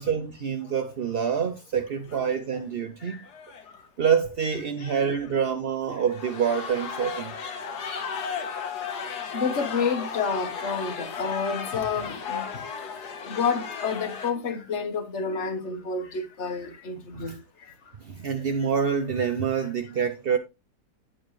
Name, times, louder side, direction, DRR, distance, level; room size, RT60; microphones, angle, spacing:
voice 1, 0.0-3.2 4.0-7.4 17.1-17.4 18.0-20.4, right 7 dB, 65° right, 0.5 m, -26 dB
sound 1, 2.1-2.3 2.5-2.6 3.3-3.7 4.8-5.3 5.9-14.3, left 6 dB, 65° left, 1.6 m, -35 dB
voice 2, 9.3-12.5 13.0-17.4, left 5 dB, 45° left, 1.3 m, -29 dB
8.9 x 7.3 x 3.1 m
omnidirectional pair, 1.9 m